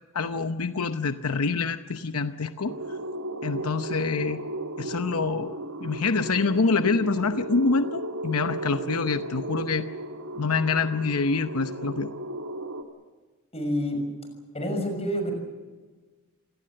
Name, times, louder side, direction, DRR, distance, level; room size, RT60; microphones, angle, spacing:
voice 1, 0.1-3.0 3.4-4.4 4.8-9.9 10.4-12.1, left 4 dB, 80° left, 9 dB, 0.8 m, -26 dB
sound 1, 2.6-12.8, right 1 dB, 85° right, 2.4 m, -35 dB
voice 2, 13.5-14.0 14.5-15.3, equal, 30° left, 5 dB, 6.2 m, -28 dB
27.5 x 18.0 x 7.7 m, 1.3 s
head